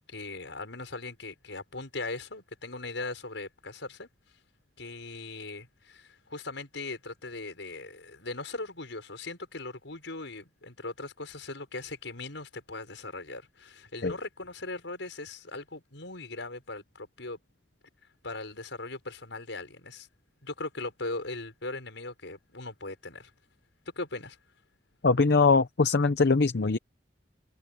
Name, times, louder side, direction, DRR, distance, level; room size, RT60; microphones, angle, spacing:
voice 1, 0.1-4.1 4.8-17.4 18.2-20.1 20.4-23.3 24.0-24.4, left 2 dB, 75° left, 6.0 m, -39 dB
voice 2, 25.0-26.8, left 4 dB, 60° left, 0.7 m, -22 dB
head